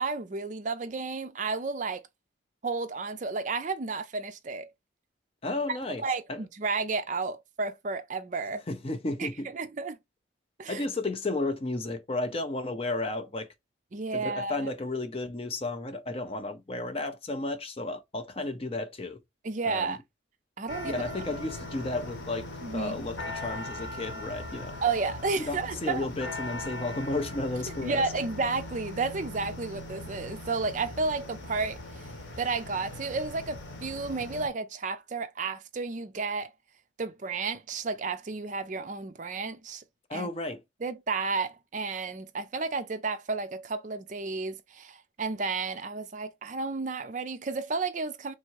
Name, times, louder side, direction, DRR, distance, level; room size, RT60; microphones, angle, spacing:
voice 1, 0.0-2.0 2.6-4.7 5.7-8.6 9.2-9.3 9.5-10.0 10.6-10.8 13.9-14.7 19.4-20.0 20.6-21.0 22.6-23.0 24.8-26.1 27.8-31.8 32.4-36.5 37.0-39.8 40.1-40.3 40.8-48.3, right 4 dB, 40° right, 0.5 m, -32 dB
voice 2, 5.4-6.0 6.3-6.4 8.7-9.5 10.7-13.5 14.1-19.2 19.7-20.0 20.8-24.8 25.4-28.0 40.1-40.6, left 2 dB, 30° left, 0.6 m, -33 dB
sound 1, 20.7-34.5, left 1 dB, 75° left, 1.1 m, -40 dB
3.4 x 2.7 x 4.5 m
head